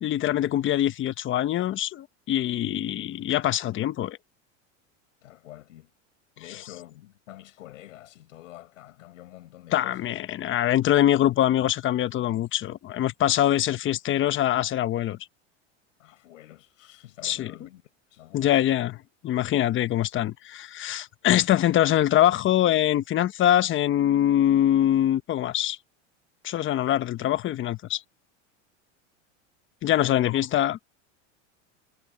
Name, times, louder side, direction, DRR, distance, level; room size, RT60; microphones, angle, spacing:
voice 1, 0.0-4.2 9.7-15.2 17.2-17.5 18.3-25.8 26.4-28.0 29.8-30.8, left 12 dB, 30° left, 1.1 m, -23 dB
voice 2, 5.2-5.9 6.4-10.1 16.0-17.8 18.1-18.5 29.9-30.3, left 15 dB, 90° left, 7.6 m, -46 dB
supercardioid pair, 125°, 37 cm